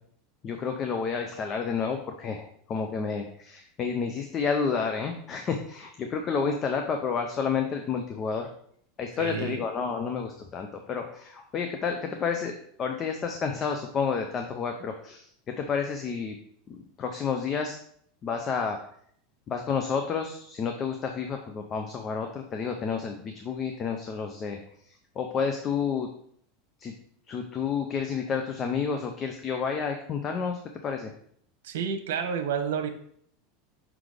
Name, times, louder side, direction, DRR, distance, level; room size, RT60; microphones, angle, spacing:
voice 1, 0.4-8.5 9.0-12.5 12.8-16.4 16.7-17.8 18.2-18.8 19.5-24.6 25.2-26.1 26.8-26.9 27.3-31.1, left 6 dB, 25° left, 4 dB, 0.6 m, -30 dB
voice 2, 9.2-9.6 31.6-32.9, right 7 dB, 90° right, 7 dB, 1.0 m, -30 dB
6.0 x 4.0 x 4.9 m, 0.64 s
supercardioid pair, 155°, 0 cm